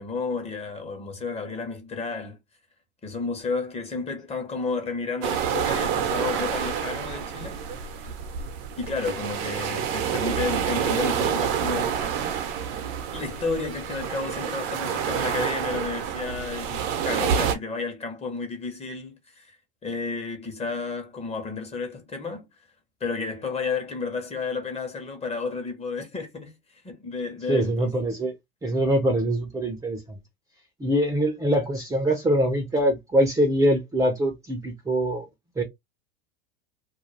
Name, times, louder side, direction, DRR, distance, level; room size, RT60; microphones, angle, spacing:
voice 1, 0.0-2.4 3.0-8.1 8.8-12.2 13.1-19.6 19.8-22.5 23.0-27.9, left 4 dB, 20° left, 1.1 m, -32 dB
sound 1, 5.2-17.6, right 8 dB, 55° right, 0.9 m, -28 dB
voice 2, 27.5-28.3 28.6-30.2 30.8-35.3 35.6-35.7, right 1 dB, 10° right, 0.7 m, -23 dB
2.6 x 2.3 x 3.2 m
hypercardioid pair, 100°, 30 cm